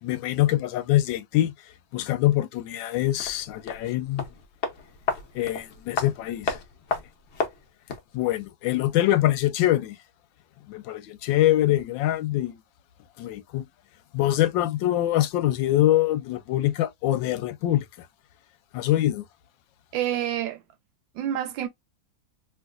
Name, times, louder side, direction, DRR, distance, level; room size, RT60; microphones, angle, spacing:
voice 1, 0.0-4.2 5.3-6.6 8.1-10.0 10.7-12.6 13.2-13.6 14.1-18.1 18.7-19.2, left 14 dB, 80° left, 1.2 m, -24 dB
sound 1, 3.2-8.2 8.4-8.5, left 4 dB, 65° left, 0.7 m, -33 dB
voice 2, 19.9-20.6 21.1-21.7, right 11 dB, 85° right, 1.4 m, -28 dB
3.4 x 2.8 x 2.4 m
omnidirectional pair, 2.1 m